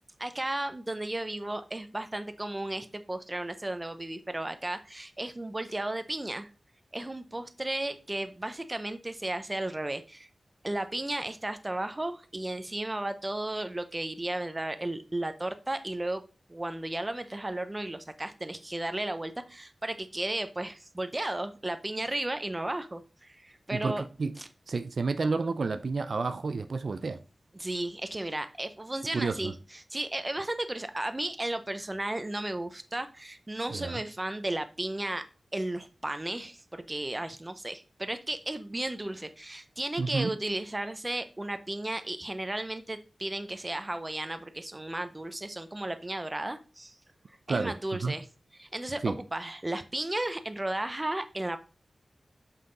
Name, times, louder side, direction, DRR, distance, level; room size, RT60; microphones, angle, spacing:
voice 1, 0.2-6.5 6.9-10.3 10.6-16.2 16.5-24.0 24.4-24.5 27.5-35.2 35.5-46.9 47.5-48.3 48.5-51.6, right 1 dB, 20° right, 0.6 m, -34 dB
voice 2, 23.7-24.3 24.7-27.2 29.1-29.5 33.7-34.0 40.0-40.3 47.5-47.7 48.0-48.1 49.0-49.2, right 4 dB, 65° right, 0.4 m, -30 dB
5.7 x 5.7 x 3.8 m
wide cardioid pair, 105°, 0 cm